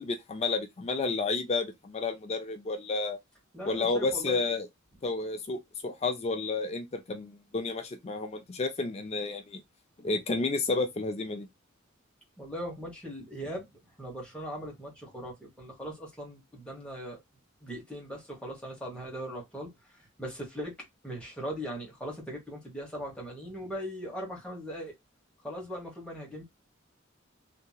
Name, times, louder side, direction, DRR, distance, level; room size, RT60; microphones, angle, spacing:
voice 1, 0.0-3.2 3.7-4.7 5.0-9.6 10.0-11.5, left 3 dB, 30° left, 0.4 m, -31 dB
voice 2, 3.5-4.4 12.4-17.2 17.6-20.8 21.0-24.9 25.4-26.4, equal, 5° left, 1.2 m, -39 dB
2.8 x 2.8 x 2.2 m
head